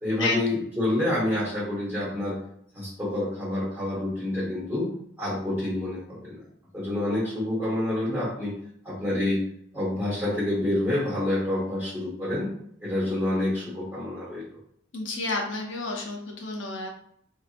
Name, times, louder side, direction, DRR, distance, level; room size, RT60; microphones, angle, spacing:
voice 1, 0.0-2.4 2.7-4.9 5.2-6.4 6.7-8.5 8.8-9.5 9.7-12.5 12.8-14.4, left 1 dB, 10° right, -11 dB, 1.2 m, -28 dB
voice 2, 14.9-16.9, left 3 dB, 75° left, 1 dB, 0.6 m, -30 dB
2.8 x 2.5 x 2.4 m, 0.68 s
head